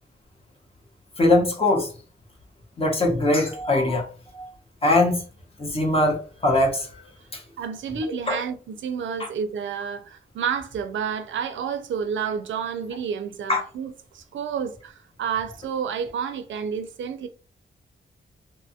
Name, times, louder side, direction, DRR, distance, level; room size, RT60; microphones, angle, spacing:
voice 1, 1.2-1.9 2.8-4.0 4.3-4.5 4.8-5.2 5.6-6.9 7.3-7.4 8.3-8.4 9.2-9.3 13.5-13.6, left 2 dB, 30° left, 0.7 m, -21 dB
voice 2, 7.6-17.3, right 7 dB, 75° right, 0.4 m, -30 dB
2.6 x 2.2 x 2.8 m
wide cardioid pair, 150°, 20 cm